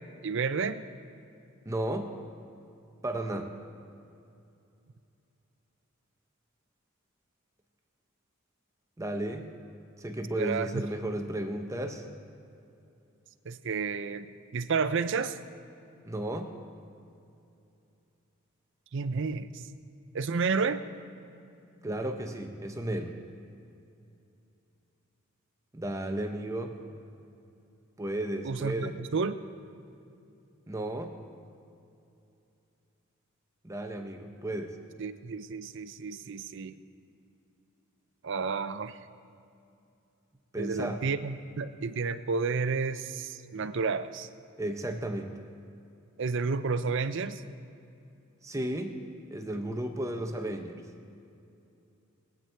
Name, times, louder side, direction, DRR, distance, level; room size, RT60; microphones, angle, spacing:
voice 1, 0.2-0.8 10.4-10.8 13.5-14.3 14.5-15.4 18.9-19.6 20.1-20.8 28.4-29.4 35.0-36.8 38.2-39.0 40.6-44.3 46.2-47.4, right 4 dB, 60° right, 12 dB, 0.5 m, -31 dB
voice 2, 1.7-2.1 3.0-3.5 9.0-9.5 10.0-12.1 16.0-16.6 21.8-23.1 25.7-26.7 28.0-28.9 30.7-31.2 33.6-34.8 40.5-41.0 44.6-45.4 48.4-49.0 49.3-50.8, right 1 dB, 15° right, 5 dB, 0.7 m, -34 dB
20.0 x 8.9 x 4.5 m, 2.7 s
head